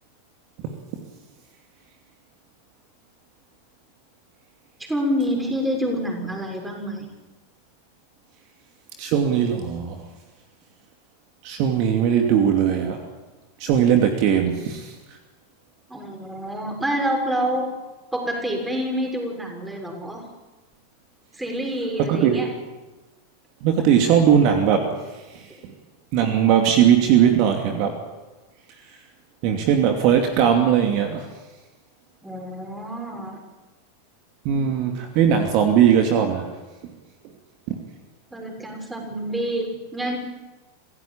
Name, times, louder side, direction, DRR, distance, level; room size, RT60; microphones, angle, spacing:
voice 1, 4.9-7.1 15.9-17.7 18.1-20.2 21.3-22.5 32.2-33.4 38.3-40.2, equal, 10° right, 2 dB, 6.4 m, -27 dB
voice 2, 9.0-10.0 11.4-13.0 13.6-14.9 22.1-22.4 23.6-25.0 25.3-25.5 26.1-27.9 29.4-31.3 34.4-36.5 37.7-37.8, right 8 dB, 45° right, 4 dB, 2.7 m, -19 dB
26.5 x 16.5 x 8.8 m, 1.2 s
figure-of-eight pair, 90°, 0 cm